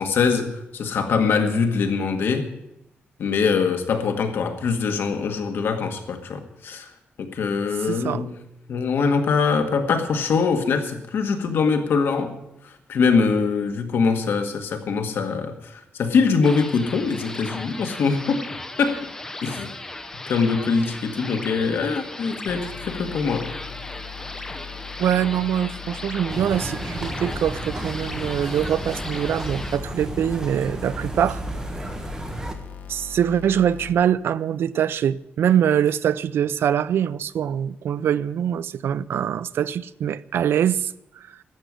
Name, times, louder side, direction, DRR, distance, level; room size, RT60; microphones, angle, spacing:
voice 1, 0.0-2.5 3.2-6.9 7.2-8.3 8.7-12.3 12.9-18.4 18.8-19.0 19.4-19.7 20.3-23.5, left 5 dB, 70° left, 1.9 m, -23 dB
voice 2, 7.9-8.2 25.0-31.4 32.9-40.9 41.3-41.4, right 9 dB, 75° right, 0.5 m, -23 dB
sound 1, 16.4-29.8, left 2 dB, 15° left, 0.9 m, -36 dB
sound 2, 22.5-33.9, left 8 dB, 50° left, 1.5 m, -40 dB
sound 3, 26.3-32.5, right 1 dB, 15° right, 1.4 m, -33 dB
13.0 x 7.9 x 9.8 m
wide cardioid pair, 160°, 4 cm